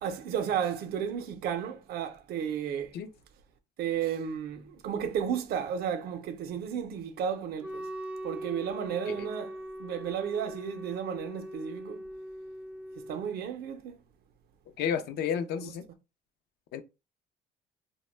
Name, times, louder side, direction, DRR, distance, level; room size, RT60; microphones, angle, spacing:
voice 1, 0.0-3.0 3.8-7.9 8.2-12.0 13.0-14.0 15.6-15.8, right 8 dB, 65° right, 0.5 m, -33 dB
Wind instrument woodwind instrument, 7.6-13.5, right 1 dB, 5° right, 0.3 m, -41 dB
voice 2, 14.8-15.8 16.7-16.8, left 8 dB, 70° left, 0.4 m, -31 dB
2.1 x 2.1 x 3.1 m
cardioid pair, 110°, 17 cm